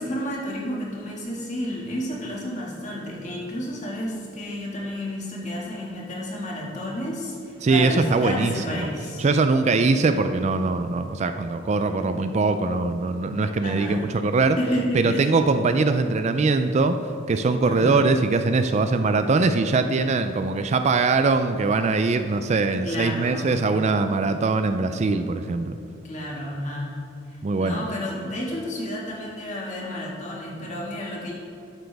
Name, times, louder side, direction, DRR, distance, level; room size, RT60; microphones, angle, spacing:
voice 1, 0.0-9.2 13.6-14.0 14.6-15.3 17.6-18.0 22.8-23.6 26.0-26.9 27.6-31.4, equal, 40° left, -3 dB, 2.0 m, -31 dB
voice 2, 7.6-8.9 9.2-14.6 14.9-17.0 17.3-25.8 27.4-27.8, right 3 dB, 35° right, 8 dB, 0.4 m, -22 dB
12.5 x 7.9 x 3.5 m, 2.5 s
head